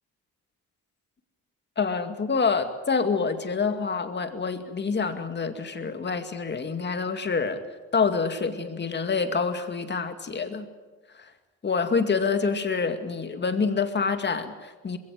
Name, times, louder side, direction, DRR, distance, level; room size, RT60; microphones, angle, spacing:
voice 1, 1.8-7.6 7.9-10.7 11.6-15.0, left 5 dB, 35° left, 7 dB, 2.3 m, -27 dB
21.0 x 17.0 x 9.4 m, 1.3 s
cardioid pair, 90°, 30 cm